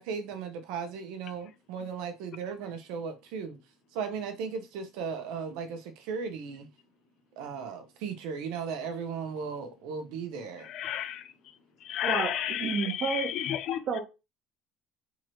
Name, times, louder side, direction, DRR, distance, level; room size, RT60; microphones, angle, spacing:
voice 1, 0.0-3.6 3.9-6.7 7.4-10.7, right 6 dB, 75° right, 0.9 m, -36 dB
voice 2, 10.7-11.2 11.9-13.8, left 11 dB, 50° left, 0.4 m, -31 dB
voice 3, 12.0-13.3 13.9-14.0, right 5 dB, 45° right, 1.0 m, -31 dB
3.6 x 3.0 x 3.1 m
cardioid pair, 150°, 0 cm